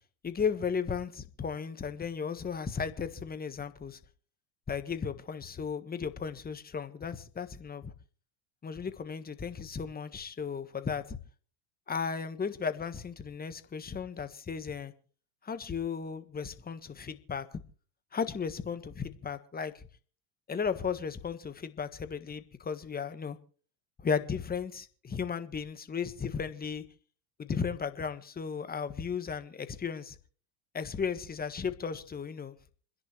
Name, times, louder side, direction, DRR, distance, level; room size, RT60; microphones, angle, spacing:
voice 1, 0.2-4.0 4.7-7.9 8.6-11.2 11.9-14.9 15.4-17.4 18.1-19.8 20.5-23.4 24.0-26.8 27.4-30.1 30.7-32.5, left 6 dB, 20° left, 11 dB, 1.5 m, -35 dB
27.5 x 10.5 x 3.2 m, 0.43 s
hypercardioid pair, 105°, 50 cm